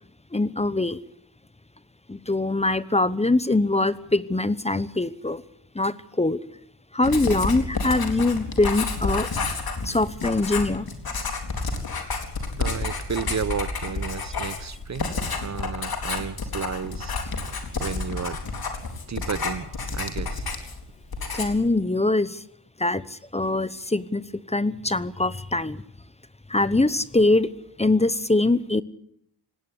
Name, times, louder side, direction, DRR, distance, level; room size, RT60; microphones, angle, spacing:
voice 1, 0.3-1.0 2.1-5.4 5.7-6.4 6.9-9.3 9.8-10.9 21.3-22.4 22.8-25.8 26.5-27.5 27.8-28.8, left 2 dB, 15° left, 1.0 m, -23 dB
Writing, 7.0-20.8 21.1-21.7, left 4 dB, 65° left, 4.1 m, -30 dB
voice 2, 12.6-15.1 15.4-17.2 17.8-18.4 19.1-20.5, right 6 dB, 45° right, 0.8 m, -32 dB
19.5 x 16.5 x 9.9 m
cardioid pair, 80°, 40 cm